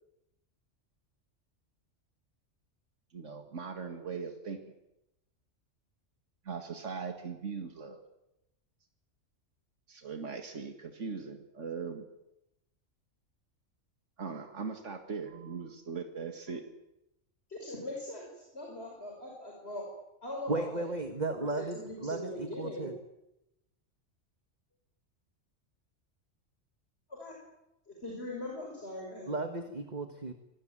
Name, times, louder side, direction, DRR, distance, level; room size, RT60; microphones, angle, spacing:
voice 1, 3.1-4.6 6.5-8.0 9.9-12.0 14.2-16.6, right 5 dB, 85° right, 5 dB, 2.4 m, -40 dB
voice 2, 17.5-19.9 20.2-20.9 21.3-22.9 27.1-27.3 27.9-29.3, left 1 dB, 55° left, -1 dB, 6.2 m, -41 dB
voice 3, 20.5-22.9 29.3-30.3, right 2 dB, 35° right, 7 dB, 1.7 m, -35 dB
26.0 x 20.5 x 9.0 m, 0.88 s
omnidirectional pair, 1.2 m